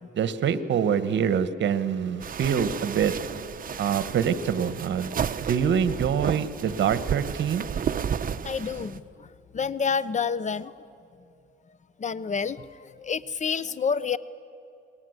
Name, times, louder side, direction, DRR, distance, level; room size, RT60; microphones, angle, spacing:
voice 1, 0.1-3.1 3.8-5.1 5.4-7.6, right 8 dB, 65° right, 13 dB, 1.4 m, -25 dB
sound 1, 2.2-9.0, right 7 dB, 45° right, 1.0 m, -32 dB
voice 2, 8.4-10.7 12.0-14.2, left 6 dB, 35° left, 17 dB, 0.8 m, -29 dB
27.5 x 21.0 x 8.1 m, 2.7 s
cardioid pair, 90°, 20 cm